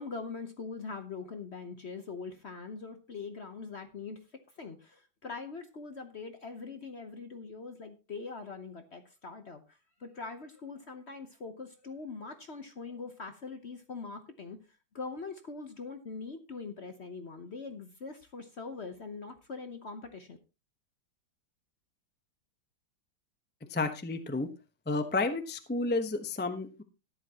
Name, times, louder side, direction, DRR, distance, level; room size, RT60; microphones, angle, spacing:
voice 1, 0.0-4.2 4.6-9.6 10.0-14.6 14.9-20.4, left 4 dB, 50° left, 8 dB, 0.8 m, -42 dB
voice 2, 23.7-24.5 24.9-26.8, left 3 dB, 15° left, 8 dB, 0.3 m, -31 dB
13.5 x 11.0 x 2.9 m, 0.29 s
omnidirectional pair, 2.2 m